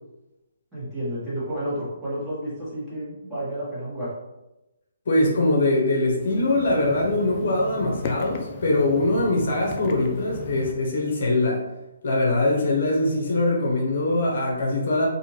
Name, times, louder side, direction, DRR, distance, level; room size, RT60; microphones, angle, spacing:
voice 1, 0.7-4.1, right 1 dB, 5° right, -12 dB, 1.3 m, -31 dB
voice 2, 5.1-11.6 12.0-15.1, left 2 dB, 60° left, -1 dB, 0.7 m, -22 dB
sound 1, 6.1-10.7, left 4 dB, 35° left, 0.3 m, -37 dB
2.5 x 2.5 x 3.1 m, 0.97 s
figure-of-eight pair, 140°, 0 cm